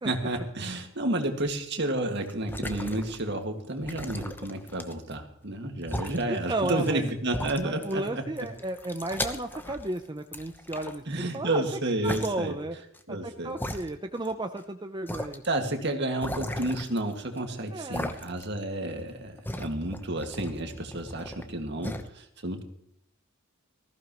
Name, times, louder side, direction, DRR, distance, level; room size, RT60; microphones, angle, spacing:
voice 1, 0.0-8.2 11.1-12.6 13.1-13.6 15.4-22.6, right 1 dB, 55° right, 5 dB, 2.0 m, -31 dB
sound 1, 2.3-3.4 3.8-5.2 5.8-6.2 6.9-7.0 7.3-8.1 8.4-10.0 10.3-11.4 12.0-12.3 12.9-13.0 13.6-14.3 14.6-14.7 15.1-15.5 16.2-17.4 17.9-18.6 18.9-21.5 21.8-22.1, left 1 dB, 10° left, 0.9 m, -36 dB
voice 2, 6.3-7.0 7.6-11.6 12.0-12.8 13.1-15.4 17.7-18.1, right 2 dB, 20° right, 6 dB, 0.6 m, -33 dB
19.5 x 15.0 x 3.1 m, 0.75 s
head